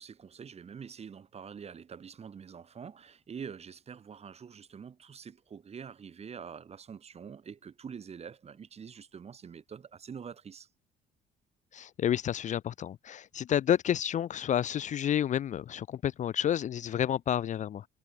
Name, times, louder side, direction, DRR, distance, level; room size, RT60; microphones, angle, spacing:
voice 1, 0.0-10.7, right 7 dB, 40° right, 5.8 m, -45 dB
voice 2, 11.7-17.9, left 10 dB, 45° left, 0.6 m, -30 dB
cardioid pair, 110°, 17 cm